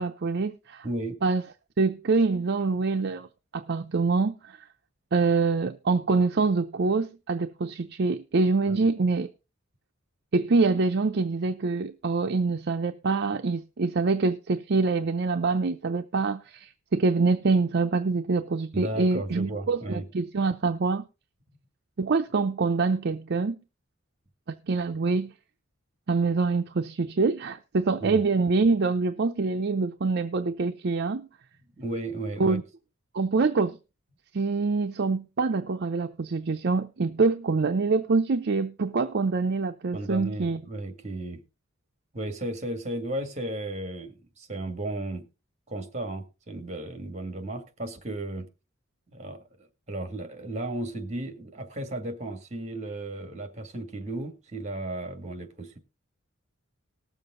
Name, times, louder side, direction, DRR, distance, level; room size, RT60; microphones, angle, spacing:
voice 1, 0.0-0.8 1.2-1.4 1.8-3.3 3.5-4.6 5.1-9.3 10.3-21.0 22.0-23.6 24.5-25.3 26.1-31.3 32.4-32.6 33.1-33.8 34.3-40.6, right 4 dB, 55° right, 0.5 m, -25 dB
voice 2, 0.8-1.2 8.7-8.8 18.7-20.1 28.0-28.2 31.8-32.6 39.9-41.4 42.1-45.3 45.7-48.5 49.1-49.4 49.9-55.8, right 1 dB, 35° right, 1.9 m, -34 dB
18.5 x 7.2 x 3.7 m
head